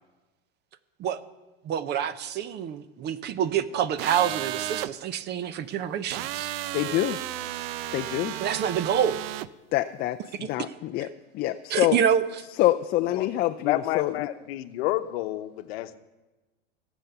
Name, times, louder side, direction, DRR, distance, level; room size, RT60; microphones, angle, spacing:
voice 1, 1.6-6.5 8.4-9.2 10.4-10.5 11.7-12.4, right 8 dB, 35° right, 15 dB, 0.7 m, -27 dB
sound 1, 4.0-4.9 6.1-9.5, right 13 dB, 70° right, 0.6 m, -33 dB
voice 2, 6.7-7.2 7.9-8.4 9.7-11.1 11.3-12.0 12.6-14.3, left 14 dB, 30° left, 8 dB, 0.4 m, -26 dB
voice 3, 13.6-16.0, left 15 dB, 75° left, 10 dB, 0.9 m, -30 dB
17.0 x 7.2 x 6.8 m, 1.1 s
supercardioid pair, 130°, 31 cm